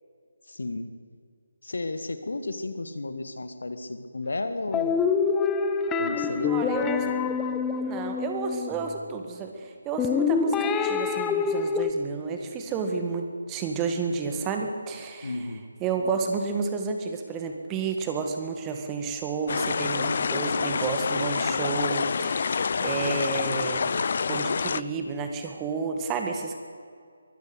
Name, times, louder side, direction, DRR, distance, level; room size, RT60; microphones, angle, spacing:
voice 1, 0.5-0.9 1.6-5.1 6.0-7.3 15.2-15.7, left 2 dB, 60° left, 10 dB, 1.9 m, -33 dB
sound 1, 4.7-8.9 10.0-11.9, left 6 dB, 10° left, 0.8 m, -26 dB
voice 2, 6.5-7.0 7.7-15.3 15.8-24.0 24.3-26.6, right 5 dB, 15° right, 4 dB, 1.8 m, -31 dB
sound 2, 19.5-24.8, left 5 dB, 45° left, 0.6 m, -27 dB
23.0 x 15.5 x 8.3 m, 2.2 s
figure-of-eight pair, 150°, 0 cm